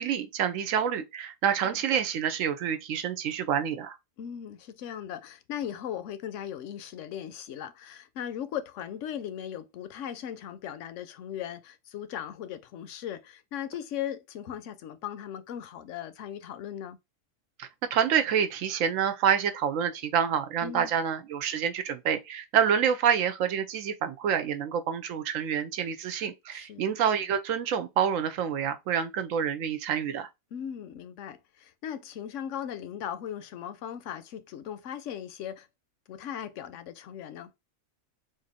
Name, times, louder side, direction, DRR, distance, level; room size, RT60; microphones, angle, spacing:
voice 1, 0.0-4.0 17.6-30.3, right 8 dB, 75° right, 1.0 m, -27 dB
voice 2, 4.2-17.0 20.6-20.9 26.5-26.9 30.5-35.7 36.1-37.5, left 9 dB, 70° left, 0.9 m, -38 dB
3.6 x 2.6 x 4.0 m
omnidirectional pair, 1.4 m